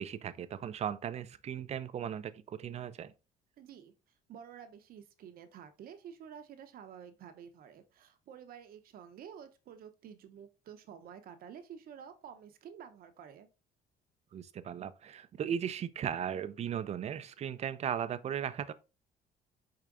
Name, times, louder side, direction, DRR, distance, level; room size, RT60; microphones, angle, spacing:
voice 1, 0.0-3.1 14.3-18.7, right 9 dB, 40° right, 0.4 m, -37 dB
voice 2, 3.6-3.9 4.3-13.5, right 8 dB, 60° right, 0.8 m, -50 dB
4.8 x 4.3 x 2.5 m
cardioid pair, 110°, 17 cm